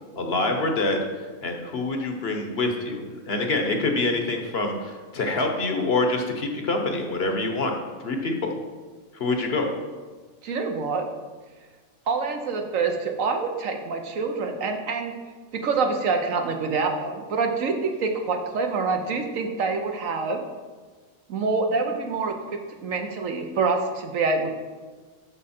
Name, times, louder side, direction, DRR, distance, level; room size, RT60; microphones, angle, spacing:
voice 1, 0.2-1.0 1.4-7.7 8.0-8.5 9.1-9.7, left 2 dB, 50° left, 3 dB, 1.1 m, -26 dB
voice 2, 10.4-11.1 12.1-15.1 15.5-20.4 21.3-24.5, right 4 dB, 75° right, 5 dB, 1.3 m, -26 dB
12.5 x 4.9 x 4.3 m, 1.4 s
omnidirectional pair, 1.4 m